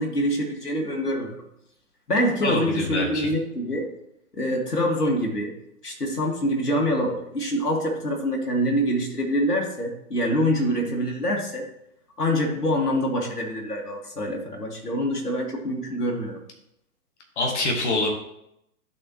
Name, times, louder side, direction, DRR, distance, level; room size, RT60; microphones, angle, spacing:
voice 1, 0.0-1.4 2.1-3.9 4.3-5.6 5.8-11.7 12.2-16.4, equal, 85° left, 0 dB, 1.8 m, -25 dB
voice 2, 2.4-3.3 17.4-18.1, left 2 dB, 50° left, 1 dB, 1.8 m, -25 dB
12.0 x 4.3 x 2.9 m, 0.81 s
figure-of-eight pair, 130°, 46 cm